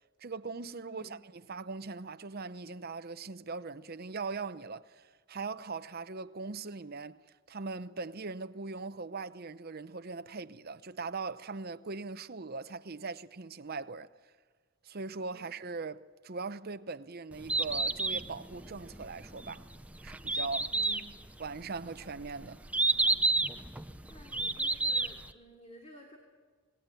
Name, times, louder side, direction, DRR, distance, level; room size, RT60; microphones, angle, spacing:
voice 1, 0.2-7.2 7.5-14.1 14.8-19.7 20.0-20.7 21.4-22.6, right 4 dB, 45° right, 0.8 m, -40 dB
voice 2, 0.8-1.2 15.3-15.4 20.7-21.3 24.1-26.2, equal, 30° left, 3.1 m, -53 dB
Bird, 17.3-25.3, right 3 dB, 5° right, 0.8 m, -31 dB
27.0 x 20.0 x 9.1 m
head